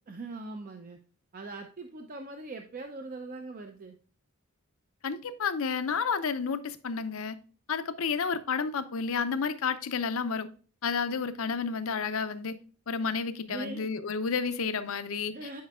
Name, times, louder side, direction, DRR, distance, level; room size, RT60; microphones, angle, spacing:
voice 1, 0.1-1.0 1.3-4.0 13.5-13.9 15.3-15.6, right 2 dB, 40° right, 0.5 m, -41 dB
voice 2, 5.0-7.3 7.7-10.5 10.8-12.5 12.9-15.3, left 5 dB, 70° left, 0.6 m, -31 dB
9.4 x 5.1 x 2.3 m
head